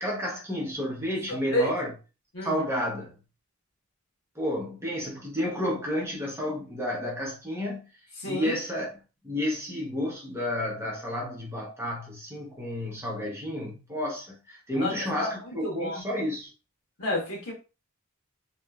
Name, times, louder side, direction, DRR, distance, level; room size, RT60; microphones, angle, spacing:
voice 1, 0.0-1.9 2.4-3.1 4.3-7.9 8.3-9.0 9.2-16.5, equal, 10° right, 0.7 m, -31 dB
voice 2, 1.3-1.7 2.3-2.6 8.2-8.5 14.8-14.9 15.2-16.0 17.0-17.5, left 1 dB, 90° left, 1.3 m, -30 dB
2.8 x 2.4 x 2.3 m
head